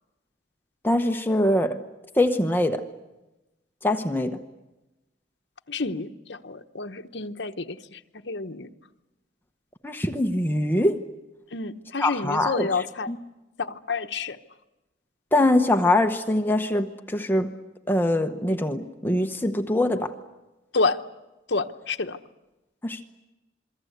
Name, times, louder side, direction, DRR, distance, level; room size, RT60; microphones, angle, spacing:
voice 1, 0.8-1.8 2.1-2.8 3.8-4.4 9.8-11.0 12.0-13.2 15.3-17.5 17.9-20.1 22.8-23.1, left 1 dB, 10° left, 5 dB, 1.0 m, -23 dB
voice 2, 5.7-7.6 7.9-8.7 11.5-13.1 13.6-14.4 20.7-21.0 21.5-22.2, left 3 dB, 65° left, 6 dB, 1.0 m, -29 dB
27.5 x 23.0 x 8.1 m, 1.0 s
head